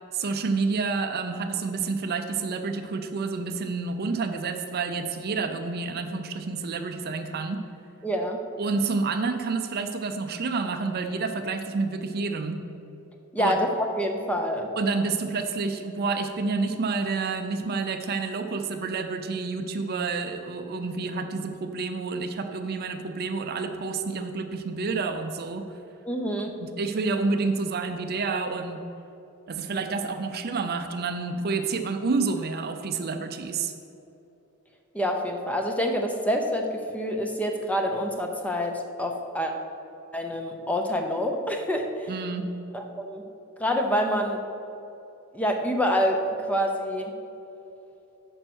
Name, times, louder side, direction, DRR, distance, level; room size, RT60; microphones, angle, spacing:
voice 1, 0.1-7.6 8.6-12.6 13.4-13.6 14.8-25.7 26.6-28.8 29.5-33.7 42.1-42.5, right 4 dB, 45° right, 7 dB, 0.5 m, -29 dB
voice 2, 8.0-8.4 13.3-14.7 26.0-26.5 34.9-39.5 40.1-42.1 42.7-43.2 43.6-44.4 45.3-47.1, equal, 5° left, 3 dB, 0.7 m, -27 dB
9.0 x 5.3 x 6.2 m, 2.9 s
head